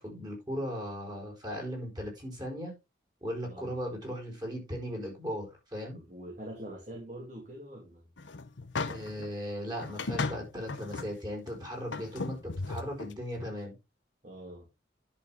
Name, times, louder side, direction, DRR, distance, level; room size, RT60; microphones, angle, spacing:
voice 1, 0.0-2.7 3.2-6.0 8.9-13.7, equal, 20° right, 4.7 m, -37 dB
voice 2, 3.4-3.7 5.9-8.1 14.2-14.7, right 1 dB, 40° right, 2.7 m, -44 dB
sound 1, 8.2-9.3 9.8-11.1 11.5-11.6 11.9-13.1, left 3 dB, 85° left, 0.9 m, -36 dB
11.0 x 6.7 x 3.6 m
head